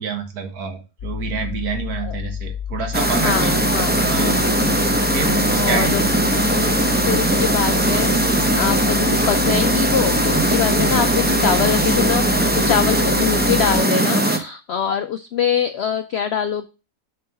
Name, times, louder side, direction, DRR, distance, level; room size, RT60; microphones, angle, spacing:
voice 1, 0.0-3.5 4.1-4.5 5.1-6.0, right 6 dB, 70° right, 5 dB, 1.7 m, -28 dB
sound 1, 1.0-13.8, left 9 dB, 50° left, 0.8 m, -30 dB
sound 2, 2.9-14.4, right 1 dB, 15° right, 0.4 m, -19 dB
voice 2, 3.0-4.0 5.5-6.0 6.5-6.7 7.1-8.1 8.5-12.2 12.5-16.6, left 8 dB, 75° left, 9 dB, 0.5 m, -23 dB
Human voice / Acoustic guitar, 3.9-11.9, right 2 dB, 55° right, 2.5 m, -38 dB
6.6 x 3.8 x 5.8 m, 0.30 s
omnidirectional pair, 1.7 m